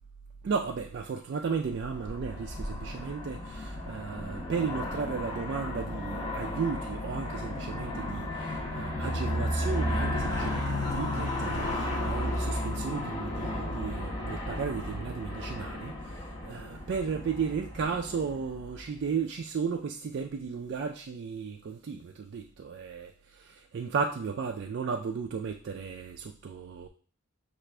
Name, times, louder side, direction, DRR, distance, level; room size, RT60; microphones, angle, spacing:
voice 1, 0.4-26.9, right 5 dB, 50° right, 2 dB, 0.3 m, -34 dB
Aircraft, 1.8-19.0, left 1 dB, 25° left, 0.7 m, -34 dB
sound 1, 10.3-12.5, left 2 dB, 85° left, 0.8 m, -42 dB
5.8 x 2.5 x 3.2 m, 0.42 s
head